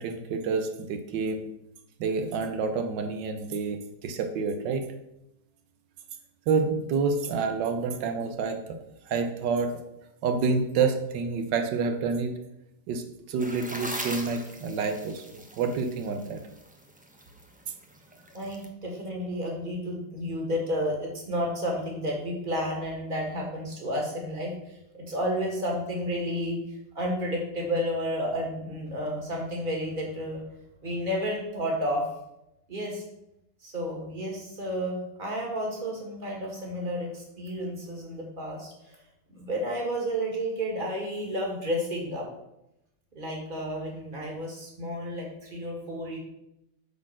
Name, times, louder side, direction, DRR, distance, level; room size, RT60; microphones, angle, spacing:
voice 1, 0.0-1.4 2.0-4.8 6.5-8.6 9.1-9.7 10.2-12.3 12.9-16.4, right 5 dB, 90° right, 6 dB, 1.5 m, -28 dB
sound 1, 13.4-18.7, right 1 dB, 10° right, 0.4 m, -40 dB
voice 2, 18.3-30.4 30.8-32.1 32.7-33.0 33.6-39.0 39.3-42.3 43.1-46.2, equal, 30° right, -1 dB, 2.2 m, -31 dB
8.6 x 4.2 x 6.2 m, 0.85 s
omnidirectional pair, 1.9 m